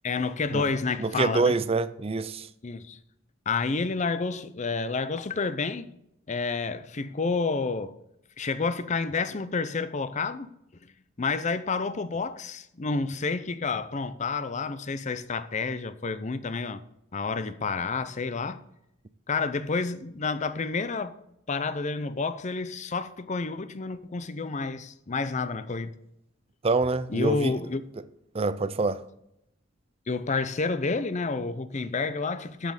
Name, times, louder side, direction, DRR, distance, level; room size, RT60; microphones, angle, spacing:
voice 1, 0.0-1.5 2.6-3.0 3.5-5.9 6.3-8.0 8.4-10.5 10.8-10.9 11.2-16.8 17.1-18.6 19.3-21.2 21.5-25.9 27.1-27.8 30.1-32.7, left 4 dB, 35° left, 0.6 m, -29 dB
voice 2, 1.0-2.5 26.6-27.5 28.3-29.0, right 3 dB, 30° right, 0.5 m, -26 dB
7.5 x 7.5 x 6.5 m
head